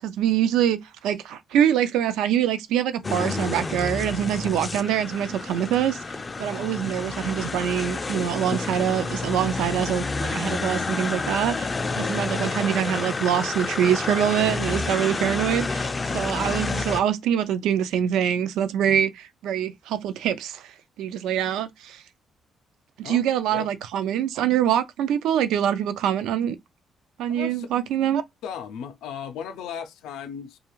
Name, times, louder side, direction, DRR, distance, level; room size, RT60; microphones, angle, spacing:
voice 1, 0.0-6.0 6.4-11.7 12.0-20.7 21.0-22.0 23.0-26.6 27.2-28.2, right 9 dB, 90° right, 0.4 m, -24 dB
sound 1, 3.0-17.0, left 3 dB, 30° left, 0.3 m, -29 dB
voice 2, 27.3-27.7 28.4-30.6, left 8 dB, 90° left, 0.5 m, -36 dB
2.3 x 2.3 x 3.0 m
cardioid pair, 90°, 0 cm